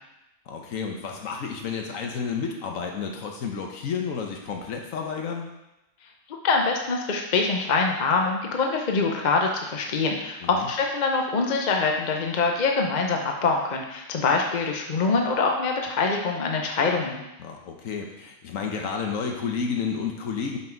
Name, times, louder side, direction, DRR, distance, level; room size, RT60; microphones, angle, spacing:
voice 1, 0.5-5.5 10.4-10.7 17.4-20.6, left 6 dB, 90° left, 2 dB, 1.3 m, -31 dB
voice 2, 6.3-17.2, left 4 dB, 40° left, 2 dB, 0.7 m, -24 dB
5.7 x 5.5 x 4.5 m, 0.93 s
omnidirectional pair, 1.4 m